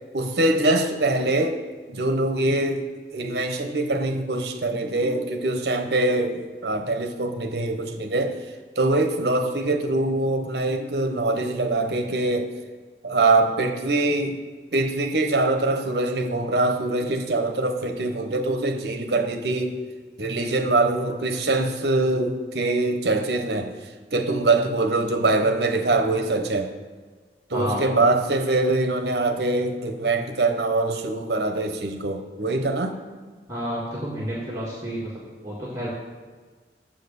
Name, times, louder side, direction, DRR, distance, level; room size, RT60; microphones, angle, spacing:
voice 1, 0.1-1.6 1.9-2.9 3.1-8.4 8.8-12.5 13.0-14.4 14.7-19.8 20.2-23.7 24.1-26.7 27.5-33.0, right 2 dB, 65° right, 6 dB, 0.9 m, -23 dB
voice 2, 27.5-27.8 33.5-35.1 35.4-35.9, equal, 20° right, -7 dB, 1.6 m, -30 dB
7.5 x 6.4 x 6.8 m, 1.4 s
head